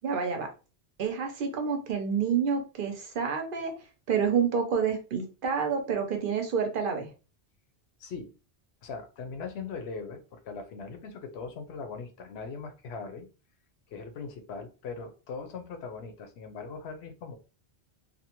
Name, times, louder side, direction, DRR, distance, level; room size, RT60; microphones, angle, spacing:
voice 1, 0.0-0.5 1.0-3.7 4.1-7.1, right 6 dB, 60° right, 4 dB, 0.7 m, -28 dB
voice 2, 8.0-8.3 8.8-13.3 13.9-17.4, left 4 dB, 80° left, 6 dB, 0.8 m, -40 dB
2.6 x 2.1 x 2.8 m, 0.33 s
omnidirectional pair, 1.1 m